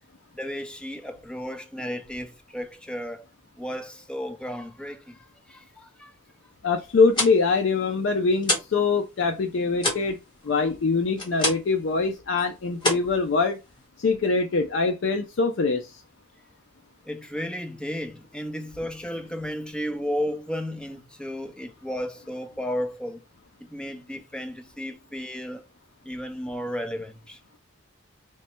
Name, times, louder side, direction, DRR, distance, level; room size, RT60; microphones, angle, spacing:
voice 1, 0.3-3.3 3.6-6.1 10.5-10.6 17.0-23.2 23.6-25.6 26.0-27.4, equal, 5° left, 0.4 m, -34 dB
voice 2, 6.6-10.2 10.4-13.6 14.0-16.0, left 4 dB, 70° left, 0.4 m, -23 dB
sound 1, 6.9-8.8 9.1-11.8 12.1-12.4 12.8-13.9, left 2 dB, 25° left, 1.1 m, -29 dB
3.2 x 2.1 x 4.2 m
head